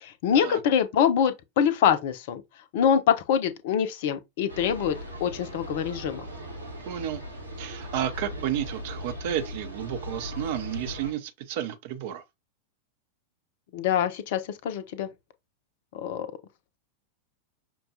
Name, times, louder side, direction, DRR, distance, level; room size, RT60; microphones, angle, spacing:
voice 1, 0.0-2.4 2.7-6.2 13.7-15.1 15.9-16.3, left 8 dB, 50° left, 0.5 m, -25 dB
sound 1, 4.5-11.1, equal, 90° right, 1.0 m, -38 dB
voice 2, 6.9-7.2 7.6-12.2, right 11 dB, 50° right, 0.6 m, -32 dB
5.8 x 2.2 x 2.7 m
figure-of-eight pair, 90°, 0 cm